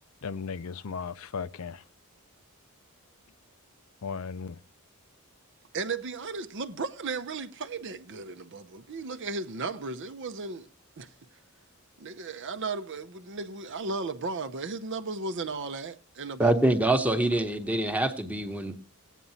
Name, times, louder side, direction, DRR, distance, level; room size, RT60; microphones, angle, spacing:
voice 1, 0.2-1.8 4.0-4.6, left 5 dB, 70° left, 0.5 m, -36 dB
voice 2, 5.7-10.7 11.0-11.1 12.0-16.6, right 3 dB, 55° right, 0.7 m, -35 dB
voice 3, 16.4-18.8, right 1 dB, 5° right, 1.1 m, -25 dB
16.5 x 9.2 x 2.8 m
head